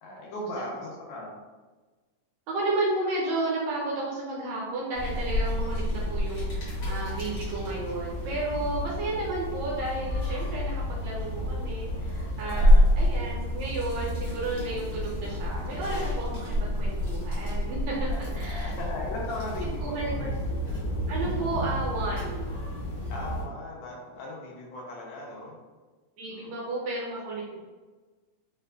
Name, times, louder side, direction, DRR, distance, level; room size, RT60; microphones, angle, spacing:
voice 1, 0.0-1.3 12.4-12.8 18.1-20.4 23.1-25.6 26.3-26.5, left 2 dB, 80° left, -3 dB, 2.0 m, -38 dB
voice 2, 2.5-12.7 13.0-18.7 19.6-20.3 21.1-22.5 26.2-27.6, right 2 dB, 75° right, -5 dB, 1.8 m, -32 dB
sound 1, 4.9-23.4, left 1 dB, 60° left, 1.2 m, -28 dB
4.8 x 2.2 x 2.2 m, 1.3 s
omnidirectional pair, 3.4 m